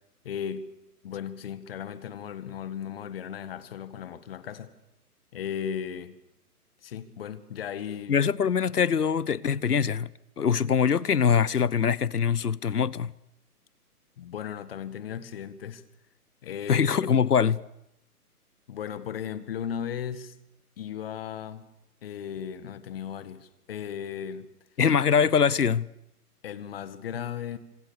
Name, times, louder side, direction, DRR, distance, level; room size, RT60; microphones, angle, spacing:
voice 1, 0.2-0.7 1.0-4.7 5.3-6.2 6.8-8.2 14.2-15.8 16.4-17.1 18.7-20.4 20.8-21.7 22.0-24.5 26.4-27.6, left 8 dB, 40° left, 1.9 m, -36 dB
voice 2, 8.1-10.1 10.4-13.1 16.7-17.6 24.8-25.9, left 7 dB, 75° left, 1.0 m, -23 dB
28.5 x 26.5 x 6.6 m
figure-of-eight pair, 140°, 46 cm